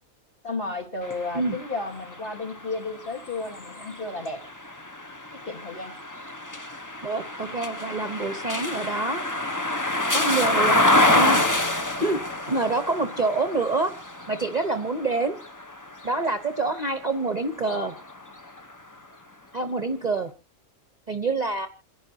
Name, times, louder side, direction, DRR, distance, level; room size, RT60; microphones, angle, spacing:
voice 1, 0.4-4.4 5.3-6.0, left 3 dB, 40° left, 1 dB, 2.4 m, -33 dB
sound 1, 1.0-17.0 17.5-18.7, left 1 dB, 15° left, 0.8 m, -27 dB
voice 2, 7.0-9.2 10.1-10.8 11.1-11.4 12.0-12.2 12.5-13.9 14.3-15.4 16.0-17.9 19.5-20.3 21.1-21.7, right 3 dB, 30° right, 8 dB, 1.0 m, -26 dB
27.5 x 11.0 x 2.8 m, 0.31 s
omnidirectional pair, 1.6 m